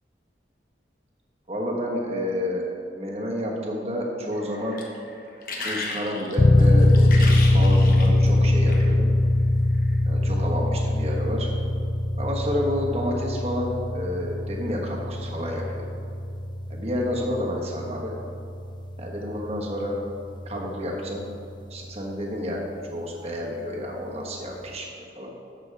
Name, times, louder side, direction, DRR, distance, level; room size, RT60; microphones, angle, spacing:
voice 1, 1.5-2.6 2.9-4.8 5.6-9.1 10.1-11.5 12.2-16.0 16.7-18.1 19.0-20.0 20.4-21.2 21.7-22.6 22.9-24.9 25.1-25.3, left 1 dB, 35° right, -2 dB, 1.3 m, -30 dB
sound 1, 4.3-9.0 9.7-9.9, left 3 dB, 50° left, 1.2 m, -35 dB
sound 2, 6.4-20.8, left 1 dB, 25° left, 0.4 m, -22 dB
11.5 x 7.6 x 3.4 m, 2.5 s
head